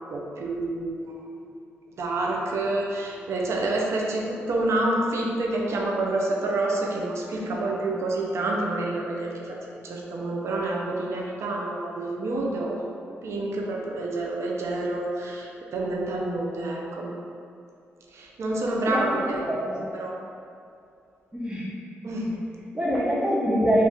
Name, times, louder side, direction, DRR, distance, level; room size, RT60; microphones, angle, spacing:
voice 1, 0.1-1.2 1.9-17.1 18.1-19.4 19.9-20.1 22.0-22.6, right 2 dB, 70° right, -1 dB, 0.4 m, -28 dB
voice 2, 18.9-20.2 21.3-21.7 22.7-23.9, equal, 20° right, -6 dB, 0.8 m, -25 dB
2.7 x 2.4 x 3.4 m, 2.5 s
supercardioid pair, 55°, 5 cm